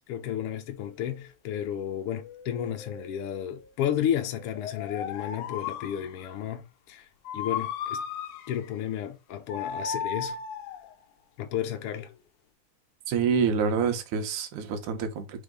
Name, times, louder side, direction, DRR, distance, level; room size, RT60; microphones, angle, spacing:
voice 1, 0.0-7.1 7.3-8.0 8.5-10.4 11.4-12.1, left 10 dB, 70° left, 1.4 m, -32 dB
sound 1, 0.8-0.9 2.1-3.7 4.4-6.3 7.3-8.8 9.5-10.9 11.8-12.1, left 7 dB, 90° left, 2.1 m, -36 dB
voice 2, 13.1-15.4, right 6 dB, 85° right, 2.5 m, -27 dB
5.6 x 4.0 x 5.1 m
omnidirectional pair, 3.4 m